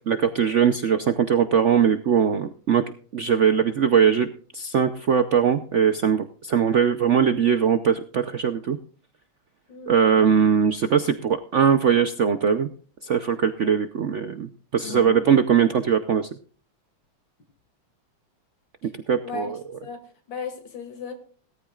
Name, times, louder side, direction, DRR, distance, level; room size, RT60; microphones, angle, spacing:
voice 1, 0.1-2.8 3.1-8.8 9.9-12.7 13.0-16.3 19.1-19.5, right 7 dB, 80° right, 10 dB, 0.6 m, -21 dB
voice 2, 14.8-15.2 18.8-18.9 19.2-19.5 19.8-21.1, left 5 dB, 65° left, 5 dB, 3.1 m, -36 dB
18.0 x 13.5 x 2.4 m, 0.42 s
omnidirectional pair, 2.3 m